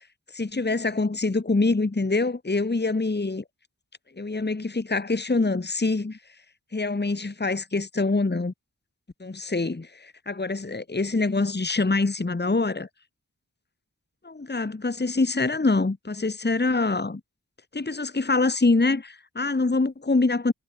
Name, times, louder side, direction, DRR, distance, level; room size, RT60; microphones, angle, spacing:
voice 1, 0.4-3.4 4.2-6.2 6.7-8.5 9.2-12.9 14.2-17.2 17.7-20.5, left 3 dB, 30° left, 1.4 m, -25 dB
wide cardioid pair, 65°, 34 cm